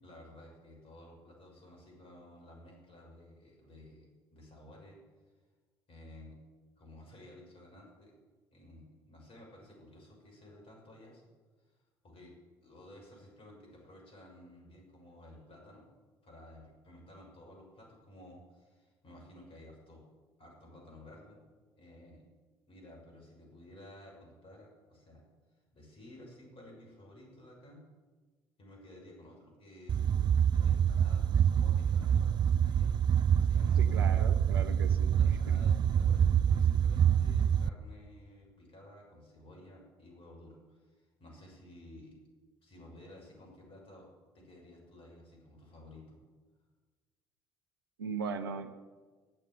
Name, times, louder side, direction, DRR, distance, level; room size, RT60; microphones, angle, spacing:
voice 1, 0.0-5.0 5.9-6.4 6.8-8.1 8.5-11.2 11.6-11.7 12.0-12.3 12.6-15.9 16.2-20.0 20.4-21.4 21.8-22.2 22.7-25.2 25.7-27.8 28.6-30.2 30.5-32.9 33.2-34.2 35.1-42.1 42.6-44.1 44.3-46.2, left 1 dB, 45° left, -1 dB, 6.5 m, -54 dB
sound 1, 29.9-37.7, right 8 dB, 35° right, 0.4 m, -26 dB
voice 2, 33.8-35.6 48.0-48.7, right 5 dB, 75° right, 9 dB, 0.9 m, -39 dB
18.0 x 7.5 x 9.1 m, 1.4 s
figure-of-eight pair, 50°, 12 cm